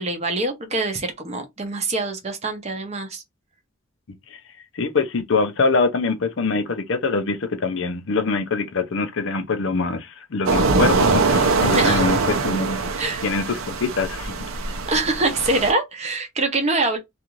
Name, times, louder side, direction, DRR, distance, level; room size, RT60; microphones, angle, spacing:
voice 1, 0.0-3.2 11.7-12.1 13.0-13.2 14.9-17.0, right 2 dB, 30° right, 0.7 m, -24 dB
voice 2, 4.7-14.3, left 4 dB, 60° left, 0.5 m, -24 dB
sound 1, 10.5-15.7, right 4 dB, 80° right, 0.6 m, -22 dB
2.5 x 2.4 x 2.9 m
head